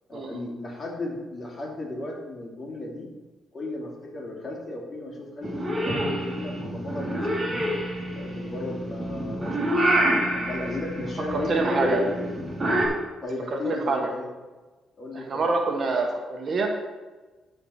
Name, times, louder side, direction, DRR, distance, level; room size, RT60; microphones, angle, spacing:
voice 1, 0.1-3.1 3.5-7.6 8.1-9.9 10.3-12.1 13.2-14.3 15.0-15.4, left 2 dB, 35° left, -3 dB, 2.8 m, -35 dB
Purr / Meow, 5.4-12.9, right 1 dB, 25° right, 2.7 m, -27 dB
voice 2, 11.3-12.0 13.6-14.0 15.1-16.7, right 3 dB, 50° right, 2 dB, 1.2 m, -26 dB
13.0 x 4.5 x 4.3 m, 1.3 s
cardioid pair, 90°, 0 cm